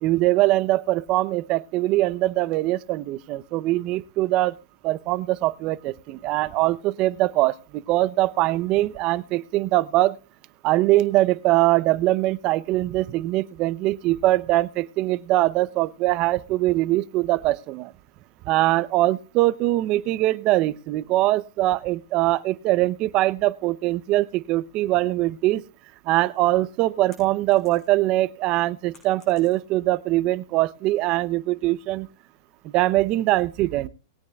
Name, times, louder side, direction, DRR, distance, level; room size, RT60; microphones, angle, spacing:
voice 1, 0.0-4.6 4.8-7.6 7.9-10.2 10.6-17.9 18.5-25.6 26.1-32.1 32.6-33.9, right 17 dB, 40° right, 0.7 m, -22 dB
sound 1, 27.1-28.1 28.5-29.9, left 3 dB, 25° left, 6.9 m, -55 dB
21.0 x 9.3 x 2.3 m
hypercardioid pair, 125°, 2 cm